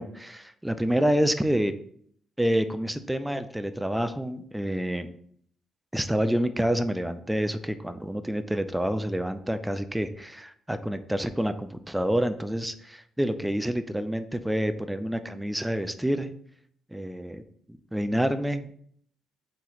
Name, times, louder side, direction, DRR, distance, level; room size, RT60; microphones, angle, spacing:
voice 1, 0.0-1.8 2.4-5.1 5.9-16.3 16.9-17.4 17.9-18.7, equal, 5° right, 10 dB, 0.4 m, -28 dB
4.3 x 2.9 x 3.9 m, 0.63 s
cardioid pair, 90°, 0 cm